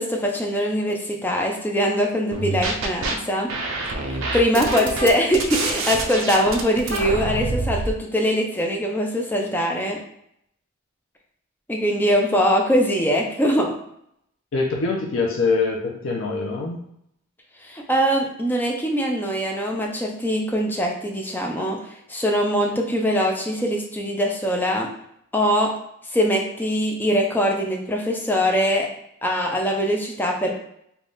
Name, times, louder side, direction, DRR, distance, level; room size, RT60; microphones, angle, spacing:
voice 1, 0.0-3.5 4.0-10.0 11.7-13.7 17.6-21.8 22.1-24.9 25.3-25.7 26.1-28.9 29.2-30.5, equal, 10° left, 1 dB, 0.4 m, -22 dB
sound 1, 2.3-3.1 3.5-7.9, right 3 dB, 70° right, 0.5 m, -26 dB
voice 2, 14.5-16.8, left 4 dB, 65° left, -2 dB, 0.5 m, -24 dB
3.4 x 2.3 x 3.9 m, 0.74 s
head